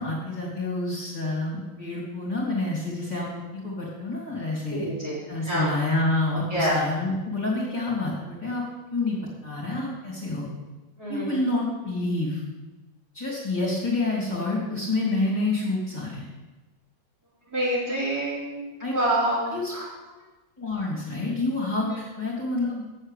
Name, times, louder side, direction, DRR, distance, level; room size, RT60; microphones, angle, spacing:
voice 1, 0.0-3.3 3.5-4.9 5.3-8.6 8.9-9.2 9.4-10.5 11.1-12.4 13.1-16.2 18.8-18.9 19.5-19.7 20.6-22.8, left 2 dB, 25° left, -7 dB, 2.6 m, -28 dB
voice 2, 4.7-5.2 5.5-5.8 6.5-6.8 11.0-11.4 17.5-19.9, right 1 dB, 55° right, -9 dB, 4.4 m, -27 dB
7.7 x 7.4 x 8.3 m, 1.1 s
omnidirectional pair, 2.0 m